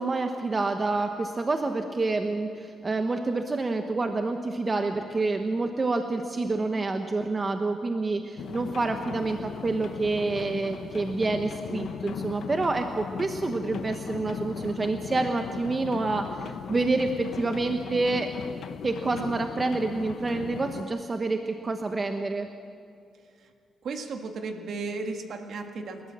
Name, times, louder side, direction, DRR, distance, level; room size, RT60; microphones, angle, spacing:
voice 1, 0.0-18.3 18.8-22.5, right 3 dB, 30° right, 5 dB, 1.1 m, -28 dB
sound 1, 8.4-20.8, left 7 dB, 70° left, 0.7 m, -38 dB
voice 2, 23.8-26.1, right 3 dB, 65° right, 4 dB, 1.8 m, -35 dB
28.0 x 13.0 x 7.5 m, 2.3 s
cardioid pair, 95°, 0 cm